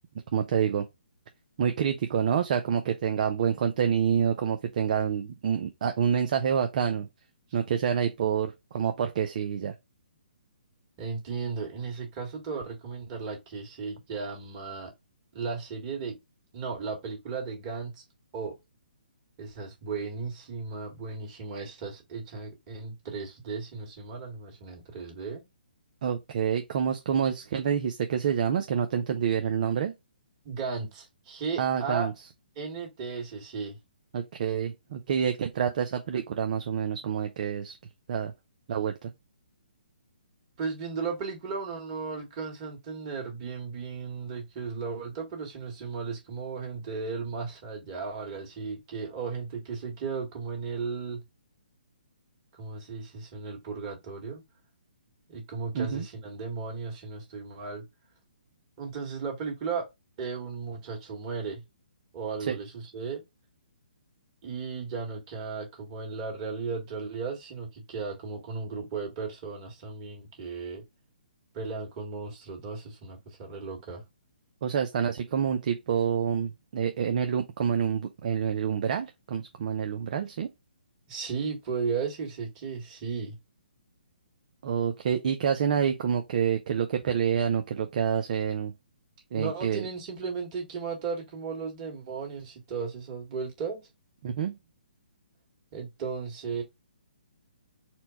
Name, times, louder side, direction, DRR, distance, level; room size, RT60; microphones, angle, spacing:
voice 1, 0.3-0.9 1.6-7.1 7.5-9.7 26.0-29.9 31.6-32.1 34.1-37.8 38.1-38.3 38.7-39.1 55.7-56.1 62.4-62.6 74.6-80.5 84.6-88.7 89.3-89.9 94.2-94.6, right 8 dB, 50° right, 0.5 m, -27 dB
voice 2, 11.0-14.9 15.3-16.2 16.5-18.0 18.3-18.6 19.4-25.4 30.4-32.1 32.6-33.8 40.6-51.2 52.5-54.4 55.3-57.8 58.8-59.9 60.2-61.6 62.1-63.2 64.4-70.8 71.5-74.0 81.1-83.4 89.3-93.9 95.7-96.6, right 5 dB, 35° right, 1.8 m, -35 dB
4.3 x 2.2 x 3.9 m
hypercardioid pair, 140°, 5 cm